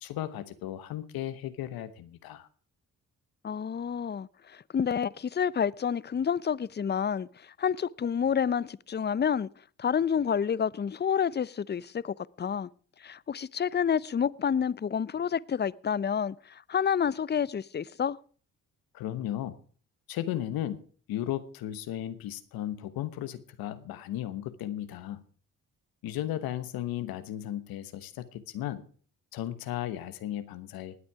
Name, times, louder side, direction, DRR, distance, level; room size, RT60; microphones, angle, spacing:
voice 1, 0.0-2.5 18.9-19.6 20.1-20.8 21.1-25.2 26.0-28.8 29.3-31.0, left 12 dB, 85° left, 1.2 m, -35 dB
voice 2, 3.4-9.5 9.8-12.7 13.0-18.2, left 7 dB, 30° left, 0.6 m, -29 dB
19.5 x 8.7 x 4.7 m
supercardioid pair, 55°, 35 cm